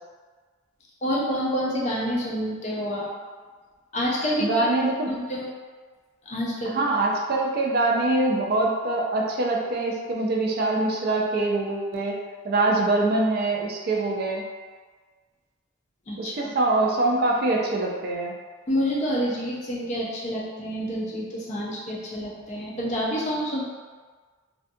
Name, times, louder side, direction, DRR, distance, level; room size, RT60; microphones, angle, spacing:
voice 1, 1.0-3.1 3.9-4.6 5.1-5.4 6.3-6.8 16.1-16.5 18.7-23.6, equal, 35° left, -5 dB, 0.5 m, -28 dB
voice 2, 4.4-5.1 6.7-12.2 12.4-14.4 16.2-18.3, right 2 dB, 50° right, -1 dB, 0.3 m, -24 dB
2.5 x 2.2 x 2.6 m, 1.4 s
head